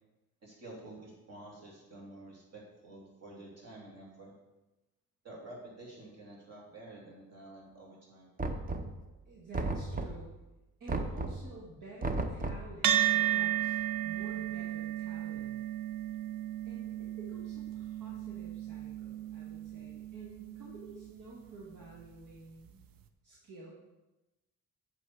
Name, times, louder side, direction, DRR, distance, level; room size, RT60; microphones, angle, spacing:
voice 1, 0.4-4.3 5.2-8.3, right 2 dB, 50° right, -3 dB, 3.1 m, -50 dB
Knock, 8.4-9.1 9.5-10.3 10.9-11.5 12.0-12.7, right 2 dB, 25° right, 0.7 m, -34 dB
voice 2, 9.2-10.3 10.8-13.8 14.0-15.6 16.6-22.9 23.2-23.7, right 2 dB, 70° right, -4 dB, 1.8 m, -51 dB
sound 1, 12.8-21.5, right 12 dB, 85° right, 0.7 m, -34 dB
8.3 x 6.4 x 4.7 m, 1.0 s
cardioid pair, 130°, 34 cm